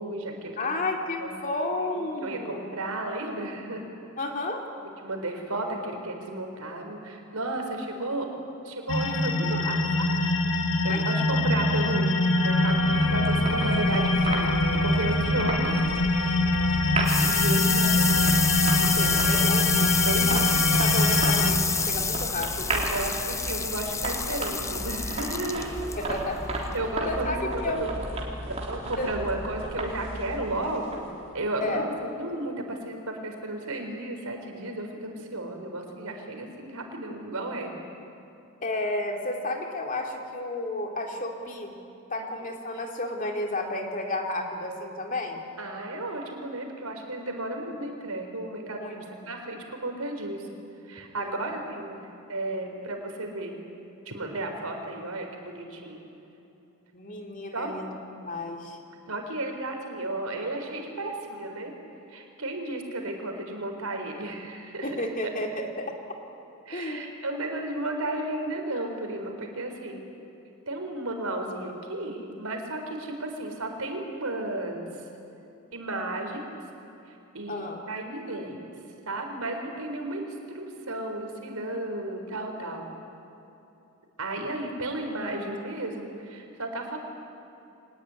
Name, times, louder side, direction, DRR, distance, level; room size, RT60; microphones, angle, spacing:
voice 1, 0.0-0.7 1.2-1.3 1.9-3.9 5.0-8.3 8.6-10.1 10.5-12.2 12.4-14.5 14.8-15.8 16.2-16.3 17.2-18.3 18.7-19.2 20.0-20.6 22.7-25.7 26.7-28.0 28.5-31.1 31.3-37.7 42.2-42.3 45.6-48.8 49.3-50.4 50.9-52.0 52.3-53.5 54.1-56.0 57.5-57.7 59.1-61.7 62.1-64.9 66.7-70.0 70.7-74.9 75.7-76.4 77.3-78.7 79.1-82.9 84.2-87.0, right 2 dB, 85° right, 3 dB, 4.2 m, -33 dB
voice 2, 0.6-2.6 4.2-4.6 10.9-11.0 19.0-20.0 20.3-20.5 20.8-22.8 26.0-26.7 27.0-27.9 29.0-29.1 31.6-31.9 38.6-41.7 42.1-45.4 48.7-49.0 51.2-51.5 56.9-58.8 64.8-65.9 66.7-67.0 77.5-77.8 85.4-85.5, left 2 dB, 35° left, 2 dB, 2.6 m, -32 dB
sound 1, 8.9-21.5, left 1 dB, 60° left, 2.0 m, -24 dB
sound 2, 12.2-31.2, right 1 dB, 30° right, 3.6 m, -34 dB
sound 3, 16.3-27.6, left 5 dB, 15° left, 0.7 m, -28 dB
23.5 x 19.5 x 9.7 m, 2.9 s
head